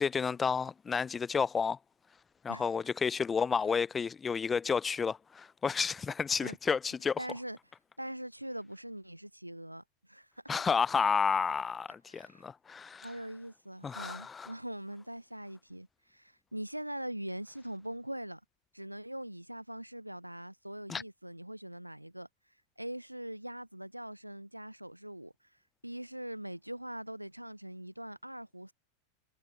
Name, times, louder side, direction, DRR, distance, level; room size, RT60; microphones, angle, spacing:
voice 1, 0.0-1.8 2.4-7.2 10.5-13.1 13.8-14.5 20.9-21.0, left 6 dB, 15° left, 0.3 m, -31 dB
voice 2, 7.2-7.6 8.0-10.3 12.1-12.4 13.0-18.4 18.7-22.3 22.8-25.3 25.8-28.7, right 1 dB, 90° right, 0.8 m, -42 dB
figure-of-eight pair, 90°, 0 cm